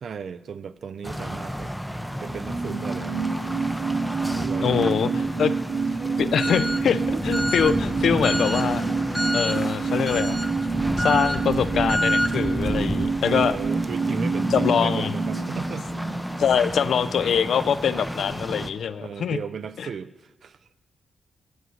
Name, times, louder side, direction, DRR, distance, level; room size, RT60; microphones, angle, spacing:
voice 1, 0.0-1.7 2.2-3.6 4.2-5.0 7.1-7.2 9.1-9.6 10.7-11.1 13.2-15.9 19.0-20.6, right 6 dB, 60° right, 13 dB, 0.3 m, -36 dB
sound 1, 1.0-18.7, equal, ahead, 0.5 m, -29 dB
sound 2, 2.1-17.1 17.4-17.5, right 5 dB, 85° right, 1.7 m, -28 dB
voice 2, 4.6-5.5 6.2-8.8 9.3-10.4 11.0-13.6 14.5-15.1 16.4-19.4 19.8-19.9, left 7 dB, 75° left, 15 dB, 0.4 m, -24 dB
sound 3, 6.0-11.5, left 1 dB, 20° left, 1.1 m, -45 dB
7.9 x 7.8 x 6.3 m, 1.1 s
wide cardioid pair, 130°, 0 cm